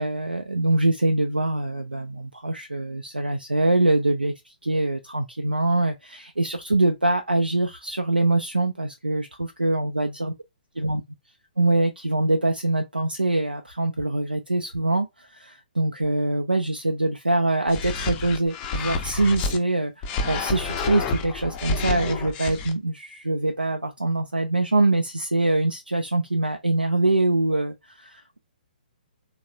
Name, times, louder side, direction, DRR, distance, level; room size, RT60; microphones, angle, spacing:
voice 1, 0.0-10.3 10.8-11.0 11.6-28.4, right 2 dB, 85° right, 0.4 m, -24 dB
sound 1, 17.7-19.6 20.0-22.7, left 4 dB, 25° left, 0.5 m, -29 dB
3.2 x 2.0 x 2.6 m
figure-of-eight pair, 125°, 5 cm